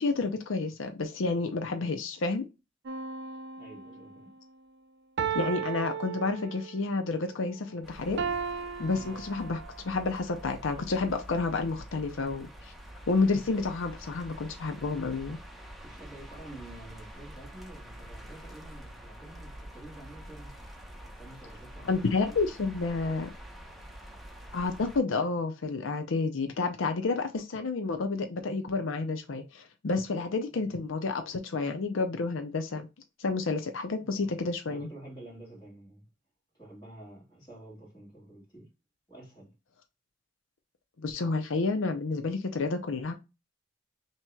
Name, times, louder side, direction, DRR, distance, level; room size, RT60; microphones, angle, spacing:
voice 1, 0.0-2.4 5.3-8.2 8.8-12.7 13.1-15.4 21.8-23.3 24.5-32.9 33.2-34.9 41.0-43.1, left 3 dB, 85° left, 0.6 m, -30 dB
sound 1, 2.9-4.2 5.2-6.9 8.2-9.9 10.5-10.7, right 6 dB, 60° right, 0.5 m, -35 dB
voice 2, 3.6-4.3 8.9-9.2 15.8-20.6 21.2-22.5 30.5-30.8 34.0-36.0 36.5-38.7 39.1-39.5, right 1 dB, 20° left, 2.7 m, -49 dB
sound 2, 7.8-25.0, right 1 dB, ahead, 1.0 m, -47 dB
5.7 x 3.0 x 2.3 m
head